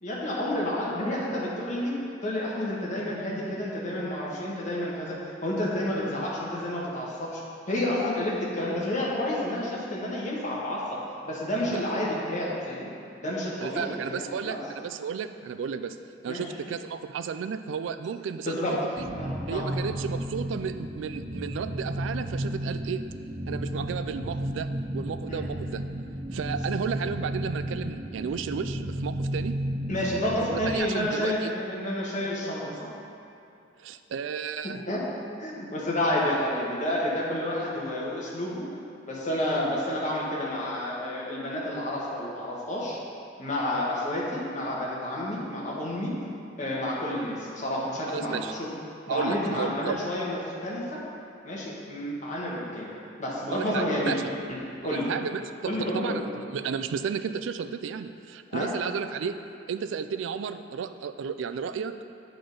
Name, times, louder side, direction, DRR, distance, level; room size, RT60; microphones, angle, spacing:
voice 1, 0.0-7.4 7.7-11.0 11.2-12.9 13.2-14.6 16.3-16.4 18.4-18.8 19.2-19.6 25.3-25.4 29.9-32.9 34.6-35.0 35.4-38.7 39.1-43.0 43.4-46.1 46.6-48.7 49.1-51.0 51.4-54.1 54.5-54.6 54.8-55.1 55.7-56.2 58.5-58.7, left 1 dB, 40° left, -5 dB, 1.3 m, -30 dB
voice 2, 13.6-16.0 16.2-19.0 19.5-23.0 23.5-24.7 24.9-25.8 26.3-29.5 30.5-31.5 33.8-34.8 48.1-48.5 49.1-50.0 53.5-54.2 54.8-59.4 59.7-62.0, right 6 dB, 75° right, 10 dB, 0.3 m, -33 dB
sound 1, 19.0-30.8, right 1 dB, 30° right, 0.6 m, -33 dB
8.8 x 3.9 x 5.2 m, 2.6 s
head